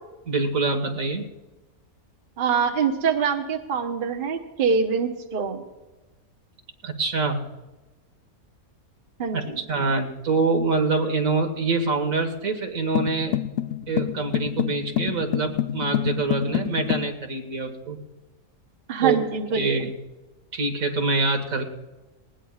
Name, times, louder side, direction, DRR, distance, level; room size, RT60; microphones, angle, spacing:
voice 1, 0.3-1.3 6.8-7.4 9.3-13.4 13.9-18.0 19.0-19.2 19.5-19.9 20.5-21.6, right 3 dB, 70° right, 5 dB, 1.9 m, -25 dB
voice 2, 2.4-5.6 9.2-9.6 18.9-19.9, right 6 dB, 40° right, 3 dB, 1.1 m, -24 dB
sound 1, 12.9-17.1, left 12 dB, 60° left, 0.6 m, -27 dB
20.0 x 18.0 x 2.4 m, 1.1 s
omnidirectional pair, 1.5 m